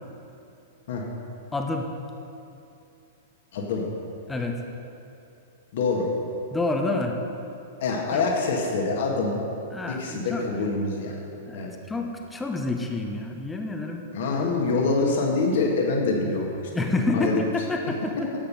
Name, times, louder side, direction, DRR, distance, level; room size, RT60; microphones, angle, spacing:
voice 1, 1.5-1.9 4.3-4.6 6.5-7.2 8.1-8.2 9.7-10.5 11.4-14.1 16.7-18.1, left 2 dB, 10° left, 3 dB, 1.0 m, -28 dB
voice 2, 3.5-3.8 5.7-6.1 7.8-9.4 9.9-11.1 11.5-11.7 14.1-17.4, left 3 dB, 50° left, -1 dB, 1.8 m, -25 dB
13.0 x 8.7 x 5.5 m, 2.7 s
figure-of-eight pair, 100°, 0 cm